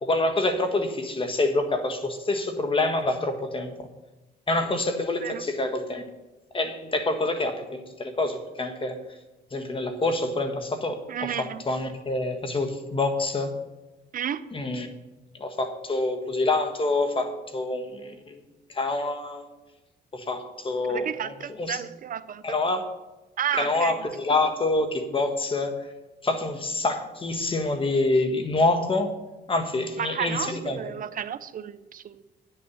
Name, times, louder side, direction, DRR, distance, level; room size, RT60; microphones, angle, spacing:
voice 1, 0.0-3.8 4.5-6.1 6.5-9.0 9.5-13.5 14.5-14.9 15.4-18.4 18.7-19.5 20.1-21.8 22.4-22.8 23.6-25.8 26.2-29.2 29.5-30.8, left 2 dB, 30° left, 1.6 m, -27 dB
voice 2, 11.1-11.6 14.1-14.4 20.9-22.4 23.4-24.0 30.0-32.2, right 9 dB, 50° right, 0.6 m, -32 dB
10.0 x 7.1 x 7.1 m
cardioid pair, 85°, 18 cm